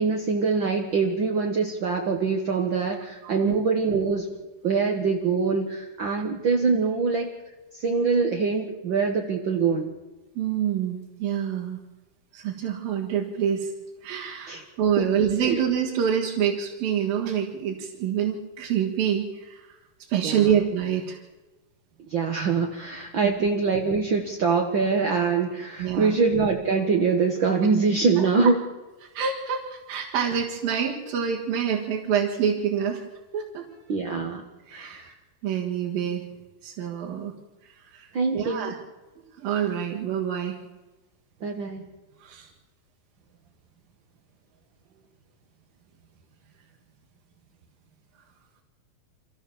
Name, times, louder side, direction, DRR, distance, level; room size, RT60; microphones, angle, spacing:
voice 1, 0.0-4.3 4.6-7.4 7.7-9.9 14.5-14.6 15.0-15.1 15.4-15.6 20.2-20.5 22.1-28.6 33.9-34.5 34.7-35.1 38.1-38.7 41.4-41.8, right 4 dB, 55° right, 2 dB, 1.3 m, -24 dB
voice 2, 3.2-3.6 10.4-11.8 12.3-13.7 14.0-19.6 20.1-21.2 23.2-23.5 25.8-26.2 29.2-33.0 33.3-33.6 34.7-35.0 35.4-36.2 36.6-37.3 37.9-38.1 38.3-38.7 39.4-40.6 42.2-42.5, right 8 dB, 80° right, -3 dB, 3.6 m, -26 dB
26.0 x 14.5 x 7.2 m, 1.1 s
omnidirectional pair, 4.0 m